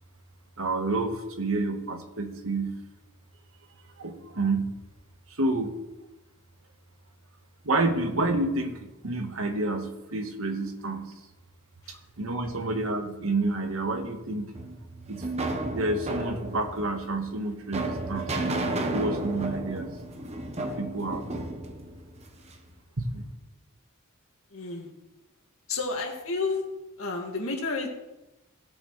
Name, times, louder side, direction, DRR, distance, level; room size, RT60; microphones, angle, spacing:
voice 1, 0.6-2.8 4.0-4.7 5.4-5.7 7.6-11.1 11.9-14.5 15.1-15.2 15.7-19.9 20.6-21.2 23.0-23.2, right 2 dB, 80° right, 5 dB, 1.3 m, -29 dB
sound 1, 14.5-22.7, right 2 dB, 30° right, 0.9 m, -33 dB
voice 2, 24.5-24.9 25.7-26.6 27.0-27.9, left 3 dB, 80° left, 1 dB, 2.0 m, -31 dB
16.5 x 6.6 x 3.2 m, 1.0 s
head